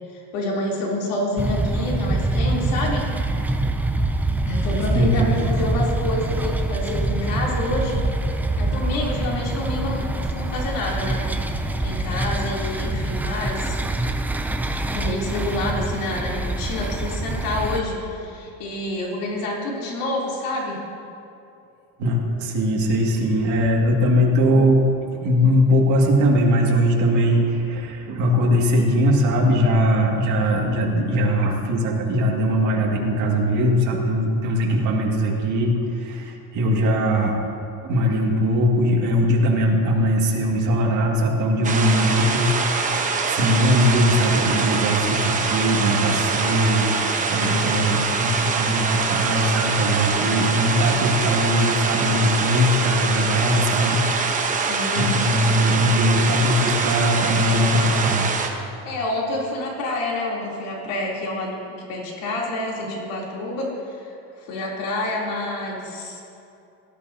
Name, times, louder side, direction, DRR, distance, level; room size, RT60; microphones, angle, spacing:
voice 1, 0.1-3.0 4.4-8.0 8.6-11.3 11.6-13.8 14.9-20.8 47.4-48.0 54.5-55.1 58.8-66.2, left 2 dB, 80° left, -3 dB, 3.2 m, -28 dB
sound 1, 1.4-17.8, right 2 dB, 5° right, 0.3 m, -25 dB
voice 2, 4.9-5.3 22.0-24.9 25.2-37.4 37.8-42.5 42.8-46.9 47.2-54.0 54.3-54.7 55.0-58.3, equal, 60° right, -1 dB, 2.1 m, -20 dB
sound 2, 41.6-58.5, right 4 dB, 25° right, 0.9 m, -24 dB
18.0 x 12.0 x 2.8 m, 2.7 s
cardioid pair, 155°, 34 cm